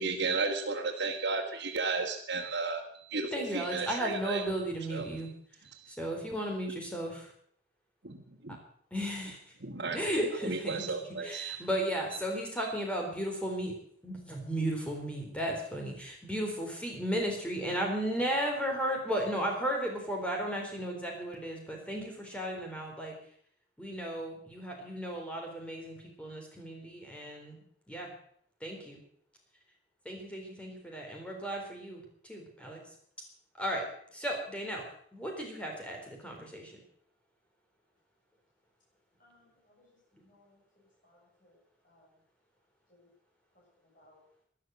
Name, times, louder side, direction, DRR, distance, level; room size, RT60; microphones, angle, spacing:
voice 1, 0.0-4.5 4.9-5.3 5.6-6.0 8.0-8.2 8.4-8.6 9.6-10.0 10.4-11.6 12.6-12.7, right 4 dB, 75° right, -3 dB, 1.8 m, -34 dB
voice 2, 3.3-5.3 6.0-7.3 8.9-9.4 9.9-10.9 11.2-13.7 14.0-23.2 23.8-27.6 27.9-28.1 28.6-29.0 30.1-32.0 32.3-32.8 33.6-33.8 34.1-34.8 35.1-36.8, right 1 dB, 5° left, 1 dB, 3.8 m, -35 dB
voice 3, 39.2-39.9 40.3-40.6 41.0-41.6 41.8-42.1 42.9-43.1 43.9-44.2, left 1 dB, 45° left, -6 dB, 7.8 m, -64 dB
13.0 x 11.5 x 8.0 m, 0.63 s
head